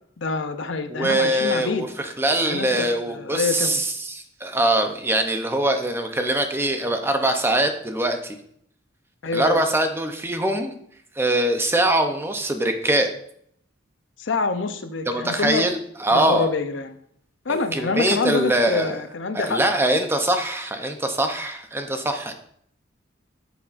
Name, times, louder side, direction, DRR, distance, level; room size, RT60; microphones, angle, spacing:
voice 1, 0.2-1.9 2.4-2.9 3.1-3.8 9.2-9.6 14.2-15.7 16.1-17.0 17.4-19.6, left 4 dB, 65° left, 9 dB, 0.6 m, -26 dB
voice 2, 0.9-8.4 9.3-10.7 11.2-13.1 15.1-16.5 17.5-19.0 19.3-22.3, right 1 dB, 10° right, 6 dB, 0.6 m, -23 dB
9.7 x 7.1 x 2.5 m, 0.67 s
head